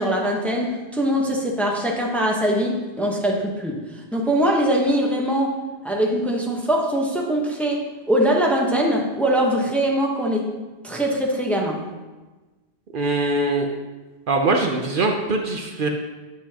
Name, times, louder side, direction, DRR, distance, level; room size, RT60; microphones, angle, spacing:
voice 1, 0.0-3.8 4.1-5.6 5.8-10.5 10.8-11.8, equal, ahead, -1 dB, 0.9 m, -22 dB
voice 2, 12.9-13.7 14.3-15.9, right 2 dB, 60° right, 2 dB, 0.8 m, -22 dB
9.6 x 8.1 x 2.8 m, 1.2 s
omnidirectional pair, 1.1 m